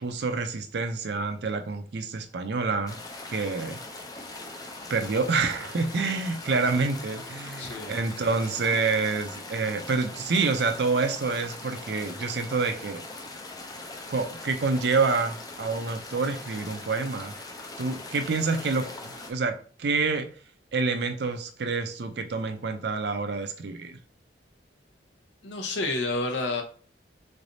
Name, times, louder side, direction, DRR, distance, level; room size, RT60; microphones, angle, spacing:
voice 1, 0.0-3.0 3.3-3.8 4.9-13.0 14.1-17.3 17.8-20.3 20.7-24.0, right 4 dB, 60° right, 7 dB, 0.5 m, -27 dB
sound 1, 2.9-19.3, left 2 dB, 20° left, 0.4 m, -41 dB
voice 2, 7.6-7.9 25.4-26.6, left 2 dB, 70° left, 4 dB, 0.8 m, -29 dB
3.8 x 3.3 x 2.6 m, 0.42 s
head